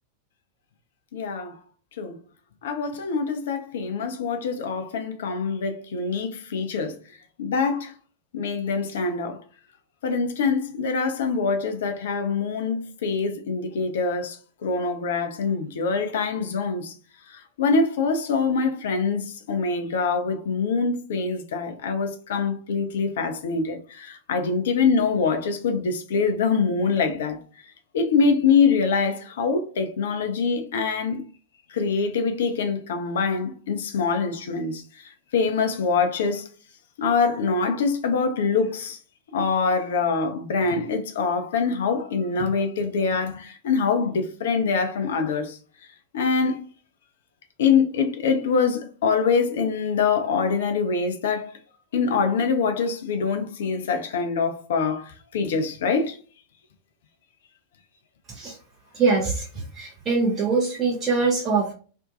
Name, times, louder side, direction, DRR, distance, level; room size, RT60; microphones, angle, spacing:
voice 1, 1.1-1.6 2.0-2.1 2.6-7.0 7.4-7.9 8.3-9.4 10.0-14.4 14.6-16.9 17.6-27.4 27.9-31.2 31.7-34.8 35.3-36.5 37.0-39.0 39.3-45.6 46.1-46.6 47.6-51.5 51.9-56.2, left 5 dB, 60° left, 0.5 m, -24 dB
voice 2, 58.9-59.5 59.8-61.7, right 4 dB, 25° right, 0.6 m, -23 dB
2.5 x 2.1 x 2.6 m
figure-of-eight pair, 90°, 0 cm